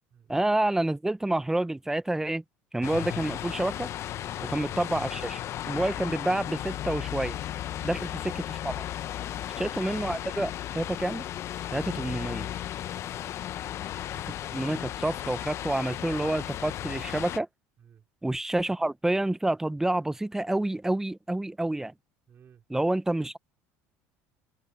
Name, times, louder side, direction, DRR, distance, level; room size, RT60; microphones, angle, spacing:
voice 1, 0.3-2.4 2.7-3.9 4.4-5.4 5.7-7.4 7.8-8.7 9.6-11.2 11.7-12.5 14.5-17.5 18.2-21.9 22.7-23.4, right 1 dB, 5° right, 1.0 m, -28 dB
sound 1, 2.8-17.4, left 12 dB, 50° left, 0.8 m, -35 dB
voice 2, 7.7-8.1 9.1-9.5 12.9-13.6 17.8-18.1 22.3-22.6, right 8 dB, 40° right, 4.3 m, -56 dB
supercardioid pair, 100°, 6 cm